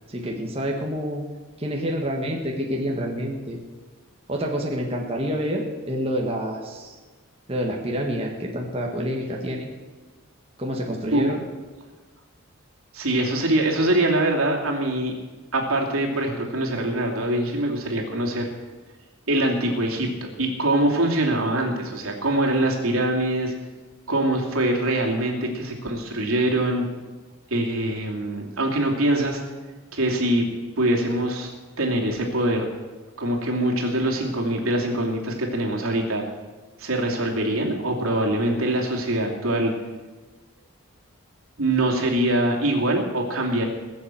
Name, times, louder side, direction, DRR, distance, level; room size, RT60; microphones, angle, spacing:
voice 1, 0.1-1.2 1.6-3.6 4.3-7.0 7.5-9.7 10.6-11.4, equal, 25° right, 0 dB, 1.7 m, -28 dB
voice 2, 12.9-15.1 15.5-18.5 19.3-23.5 24.1-26.8 27.5-29.4 29.9-30.5 30.8-31.5 31.8-32.7 33.2-36.2 36.8-39.7 41.6-43.6, right 1 dB, 80° right, 0 dB, 2.9 m, -23 dB
20.5 x 7.3 x 7.8 m, 1.3 s
head